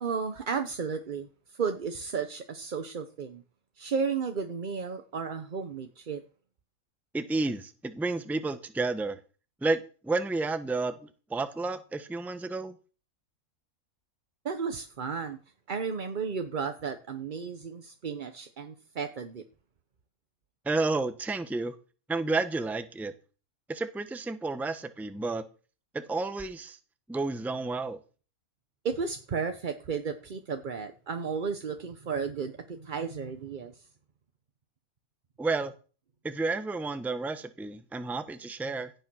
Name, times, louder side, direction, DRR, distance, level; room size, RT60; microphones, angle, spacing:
voice 1, 0.0-3.4 3.8-6.2 14.4-15.4 15.7-19.4 28.8-33.9, right 5 dB, 40° right, 7 dB, 0.8 m, -33 dB
voice 2, 7.1-9.2 9.6-11.0 11.3-12.7 20.6-21.7 22.1-23.1 23.7-25.4 25.9-26.8 27.1-28.0 35.4-35.7 36.2-38.9, right 3 dB, ahead, 10 dB, 0.7 m, -31 dB
16.5 x 6.8 x 6.1 m, 0.37 s
omnidirectional pair, 1.6 m